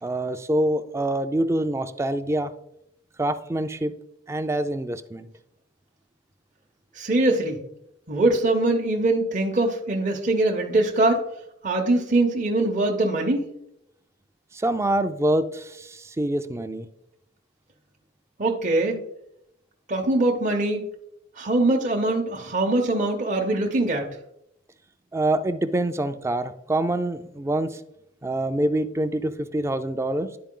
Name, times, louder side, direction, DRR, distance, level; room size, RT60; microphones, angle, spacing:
voice 1, 0.0-2.5 3.2-3.9 4.3-5.3 14.5-16.9 25.1-27.8 28.2-30.4, right 1 dB, 15° right, 10 dB, 0.4 m, -25 dB
voice 2, 6.9-7.6 8.1-11.2 11.6-13.5 18.4-19.0 19.9-20.8 21.4-24.1, right 2 dB, 40° right, 1 dB, 0.7 m, -22 dB
10.5 x 4.4 x 3.7 m, 0.79 s
head